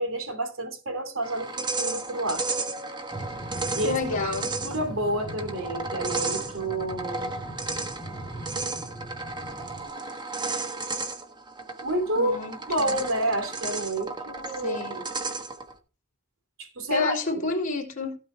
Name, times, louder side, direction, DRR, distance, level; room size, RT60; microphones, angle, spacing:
voice 1, 0.0-2.5 3.7-4.0 4.4-7.3 11.8-12.4 12.7-15.0 16.6-17.2, right 1 dB, 85° right, 2.9 m, -29 dB
sound 1, 1.2-15.7, right 3 dB, 20° right, 1.4 m, -34 dB
sound 2, 3.1-9.9, right 1 dB, 5° left, 3.6 m, -40 dB
voice 2, 3.8-4.5 12.2-13.0 14.6-15.0 16.9-18.2, left 4 dB, 40° left, 3.4 m, -30 dB
16.0 x 5.5 x 4.5 m
head